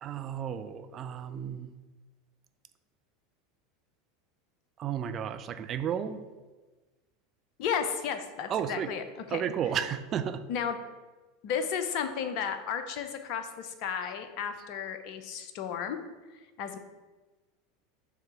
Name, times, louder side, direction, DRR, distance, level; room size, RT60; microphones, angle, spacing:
voice 1, 0.0-1.7 4.8-6.2 8.5-8.9 9.3-10.4, right 8 dB, 40° right, 9 dB, 0.5 m, -33 dB
voice 2, 7.6-9.0 9.3-9.4 10.5-10.8 11.4-16.0 16.6-16.8, left 7 dB, 55° left, 8 dB, 0.6 m, -33 dB
5.7 x 3.5 x 5.7 m, 1.2 s
figure-of-eight pair, 80°, 0 cm